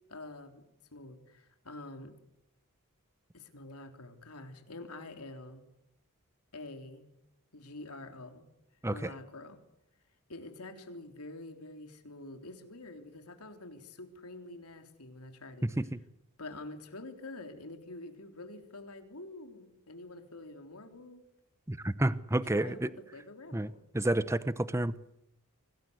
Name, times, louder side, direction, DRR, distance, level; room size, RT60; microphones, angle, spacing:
voice 1, 0.1-2.1 3.3-5.6 6.5-7.1 7.5-8.5 8.9-9.6 10.3-15.7 16.4-21.2 22.4-23.8, left 2 dB, 90° left, 5 dB, 3.6 m, -47 dB
voice 2, 21.7-22.9 23.5-24.9, right 1 dB, 15° right, 15 dB, 0.8 m, -30 dB
25.0 x 19.0 x 8.1 m, 0.84 s
head